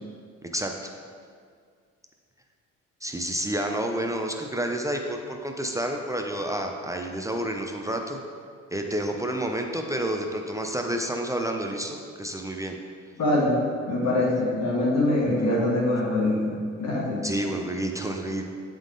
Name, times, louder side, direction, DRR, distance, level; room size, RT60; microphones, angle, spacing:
voice 1, 0.4-0.7 3.0-8.2 8.7-12.7 15.2-15.3 17.2-18.5, right 1 dB, 10° right, 2 dB, 0.5 m, -29 dB
voice 2, 13.2-17.2, left 1 dB, 60° left, -4 dB, 1.7 m, -24 dB
8.9 x 3.7 x 3.8 m, 2.1 s
cardioid pair, 90°, 30 cm